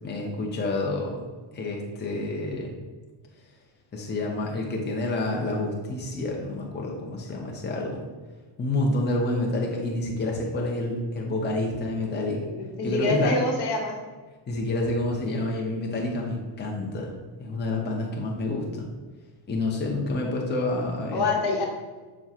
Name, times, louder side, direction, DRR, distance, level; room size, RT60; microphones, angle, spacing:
voice 1, 0.0-1.2 1.5-2.7 3.9-8.1 8.6-12.5 12.8-13.3 14.5-17.1 17.4-18.9 19.5-21.2, left 2 dB, 20° left, -1 dB, 0.8 m, -28 dB
voice 2, 12.8-14.0 21.1-21.6, left 3 dB, 55° left, 0 dB, 1.1 m, -25 dB
6.9 x 2.3 x 2.9 m, 1.4 s
supercardioid pair, 75°, 50 cm